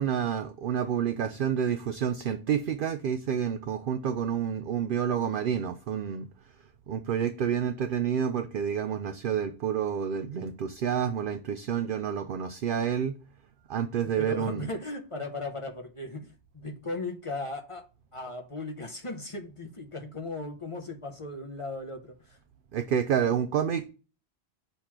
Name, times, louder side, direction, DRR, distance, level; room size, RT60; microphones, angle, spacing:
voice 1, 0.0-6.3 6.9-13.2 13.7-14.7 22.7-23.9, right 8 dB, 60° right, 0.6 m, -29 dB
voice 2, 14.0-17.8 18.1-22.4, left 2 dB, 35° left, 0.7 m, -37 dB
6.6 x 3.0 x 5.8 m
omnidirectional pair, 1.2 m